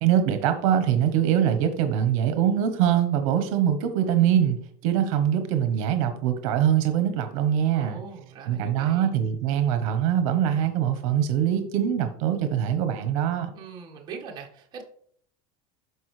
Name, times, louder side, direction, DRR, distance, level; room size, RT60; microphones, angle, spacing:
voice 1, 0.0-8.0 8.5-13.5, right 9 dB, 65° right, 8 dB, 0.9 m, -23 dB
voice 2, 7.7-9.1 13.5-14.8, right 5 dB, 25° right, 0 dB, 1.4 m, -41 dB
12.5 x 4.7 x 3.2 m, 0.62 s
cardioid pair, 175°, 18 cm